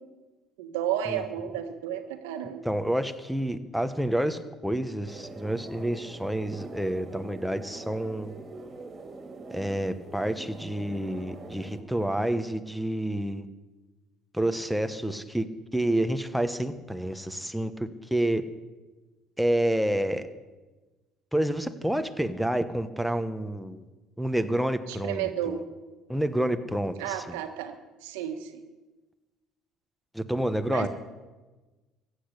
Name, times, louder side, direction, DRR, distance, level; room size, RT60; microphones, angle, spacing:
voice 1, 0.6-2.6 24.9-25.6 27.0-28.6 30.7-30.9, right 10 dB, 85° right, 7 dB, 1.4 m, -32 dB
voice 2, 2.6-8.3 9.5-13.5 14.3-15.5 15.7-18.4 19.4-20.3 21.3-23.8 24.2-25.6 26.1-27.4 30.1-30.9, right 1 dB, ahead, 9 dB, 1.2 m, -29 dB
sound 1, 5.1-11.8, right 3 dB, 40° right, 2.4 m, -44 dB
15.0 x 8.2 x 8.4 m, 1.2 s
supercardioid pair, 80°, 0 cm